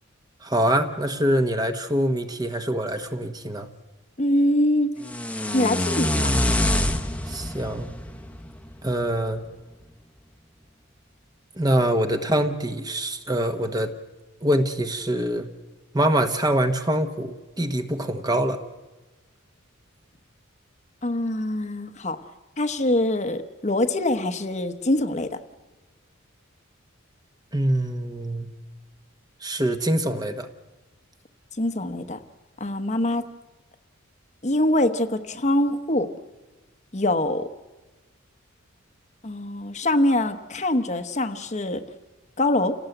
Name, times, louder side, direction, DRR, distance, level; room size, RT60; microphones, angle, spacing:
voice 1, 0.4-3.7 7.3-7.9 8.8-9.4 11.6-13.9 14.4-15.5 15.9-18.6 27.5-28.5 29.4-30.5, right 1 dB, 20° right, 7 dB, 1.3 m, -24 dB
voice 2, 4.2-4.9 5.5-6.1 21.0-22.2 22.6-25.4 31.6-32.2 32.6-33.2 34.4-36.1 36.9-37.4 39.2-41.8 42.4-42.7, left 1 dB, 35° left, 7 dB, 1.1 m, -23 dB
sound 1, 5.0-9.1, left 1 dB, 5° left, 1.1 m, -25 dB
29.0 x 17.5 x 8.0 m, 1.2 s
head